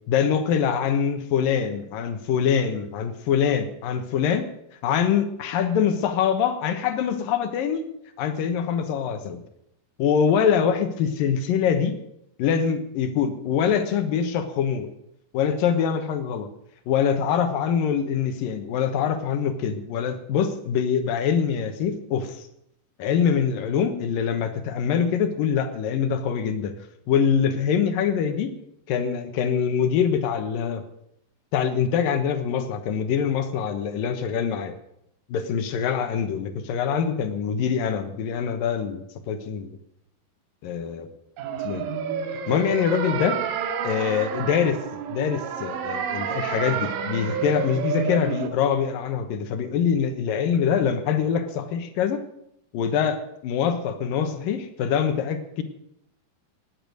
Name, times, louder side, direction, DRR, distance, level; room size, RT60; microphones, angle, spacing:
voice 1, 0.1-4.5 4.8-7.9 8.2-9.4 10.0-12.0 12.4-14.9 15.3-16.5 16.9-22.5 23.0-26.7 27.1-28.5 28.9-30.8 31.5-34.7 35.3-39.8 40.6-41.1 41.6-41.9 42.5-43.4 43.8-52.2 52.7-55.6, left 7 dB, 85° left, 9 dB, 3.0 m, -24 dB
sound 1, 41.4-48.5, right 7 dB, 80° right, 2.9 m, -29 dB
18.5 x 8.9 x 6.7 m, 0.79 s
omnidirectional pair, 3.9 m